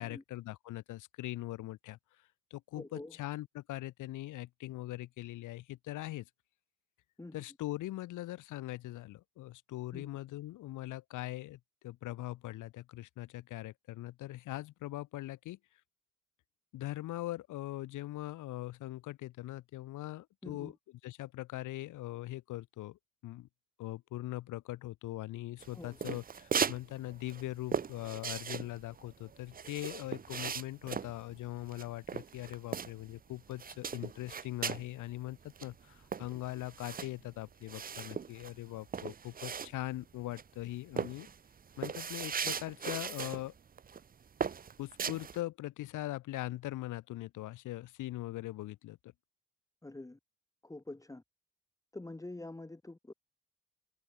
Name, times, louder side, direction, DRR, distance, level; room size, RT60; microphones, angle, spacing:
voice 1, 0.0-2.0 2.5-6.3 7.3-15.6 16.7-20.8 21.0-23.5 23.8-41.3 41.8-43.5 44.8-49.1, left 16 dB, 90° left, 2.1 m, -41 dB
voice 2, 2.7-3.1 7.2-7.4 9.9-10.1 20.4-20.7 25.7-26.2 49.8-50.2 50.6-51.2 51.9-53.1, left 2 dB, 10° left, 1.2 m, -46 dB
sound 1, 25.6-26.8 27.1-33.2 33.5-34.9 35.3-35.4 35.6-40.0 40.4-40.6 41.0-43.4 43.8-44.0 44.4-45.4, right 6 dB, 30° right, 0.7 m, -38 dB
cardioid pair, 90°, 30 cm